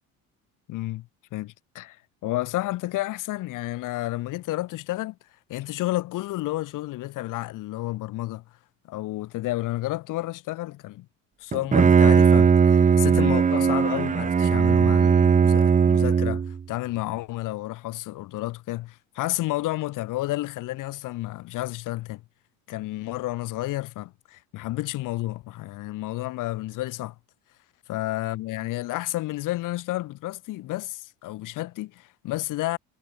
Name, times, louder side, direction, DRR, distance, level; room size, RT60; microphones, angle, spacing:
voice 1, 0.7-2.0 2.2-5.2 5.5-8.4 8.8-11.1 11.4-22.2 22.7-27.1 27.9-32.8, left 17 dB, 70° left, 6.7 m, -31 dB
Bowed string instrument, 11.5-16.6, right 6 dB, 25° right, 0.9 m, -18 dB
cardioid pair, 105°, 33 cm